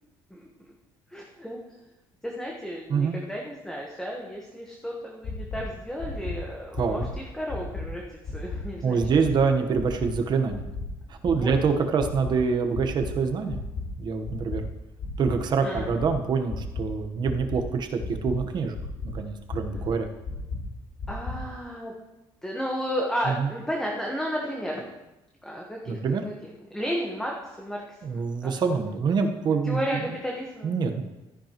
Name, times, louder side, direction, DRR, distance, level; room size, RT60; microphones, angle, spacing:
voice 1, 1.1-1.6 2.2-8.0 8.3-9.2 11.4-11.5 15.6-15.9 21.1-21.9 22.4-24.8 25.4-26.0 26.2-27.8 28.1-28.5 29.6-30.7, equal, 5° left, -2 dB, 1.2 m, -33 dB
sound 1, 5.2-5.6 6.0-6.3 6.7-7.1 7.5-7.8 8.2-8.6 9.0-9.3 9.7-10.1 10.5-10.8 11.2-11.6 12.0-12.3 12.7-13.1 13.5-13.8 14.2-14.6 15.0-15.3 15.7-16.1 16.5-16.8 17.2-17.6 18.0-18.3 18.7-19.1 19.5-19.8 20.2-20.6 21.0-21.3, left 5 dB, 60° left, 4.0 m, -33 dB
voice 2, 8.8-10.7 11.1-13.6 14.0-14.6 15.2-18.8 19.1-20.1 23.3-23.5 25.9-26.2 28.0-30.0 30.6-31.0, right 5 dB, 45° right, 5 dB, 1.2 m, -25 dB
14.0 x 10.0 x 3.0 m, 1.0 s
cardioid pair, 140°, 10 cm